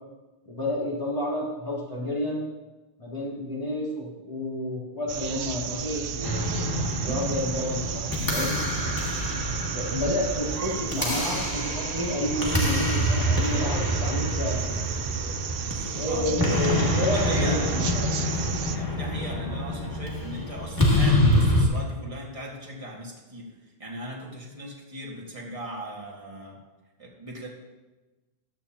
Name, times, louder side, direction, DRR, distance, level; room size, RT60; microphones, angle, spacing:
voice 1, 0.4-2.4 3.0-6.8 7.0-8.5 9.7-14.7 16.0-18.2, left 1 dB, 35° left, -7 dB, 3.9 m, -30 dB
sound 1, 5.1-18.8, right 8 dB, 65° right, 0.8 m, -33 dB
sound 2, 6.2-21.7, equal, 20° left, 2.0 m, -26 dB
voice 2, 16.1-17.9 18.7-23.5 23.8-26.6 27.0-27.5, right 1 dB, 30° right, -3 dB, 2.0 m, -38 dB
14.5 x 12.5 x 2.9 m, 1.1 s
omnidirectional pair, 1.1 m